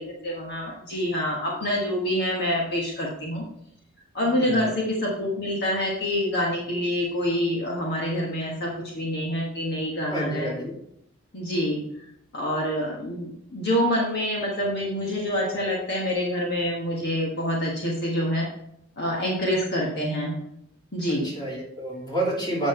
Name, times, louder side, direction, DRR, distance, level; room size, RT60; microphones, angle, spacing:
voice 1, 0.0-3.4 4.1-10.5 11.3-11.8 12.3-18.5 19.0-20.4 20.9-21.3, equal, 50° left, -2 dB, 1.5 m, -26 dB
voice 2, 4.3-4.7 10.1-10.7 21.1-22.7, right 1 dB, 20° left, -5 dB, 2.7 m, -29 dB
8.7 x 5.5 x 4.4 m, 0.75 s
head